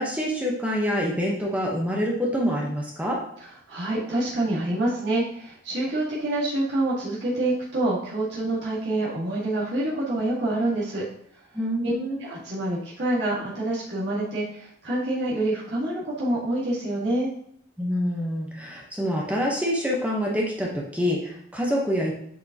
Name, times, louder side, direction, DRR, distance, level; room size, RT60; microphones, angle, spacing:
voice 1, 0.0-3.2 11.5-12.2 17.8-22.1, equal, 5° right, -2 dB, 0.9 m, -26 dB
voice 2, 3.7-11.0 11.8-11.9 12.2-17.3, right 1 dB, 60° right, -7 dB, 1.8 m, -26 dB
7.7 x 5.1 x 2.8 m, 0.68 s
head